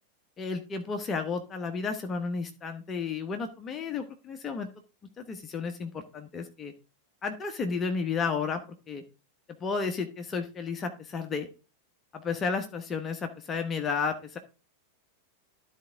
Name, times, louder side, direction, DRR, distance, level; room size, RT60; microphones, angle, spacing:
voice 1, 0.4-4.7 5.2-6.7 7.2-8.6 8.9-9.0 9.6-11.5 12.1-14.4, left 5 dB, 25° left, 6 dB, 1.2 m, -32 dB
13.0 x 4.5 x 3.8 m, 0.32 s
figure-of-eight pair, 90°, 0 cm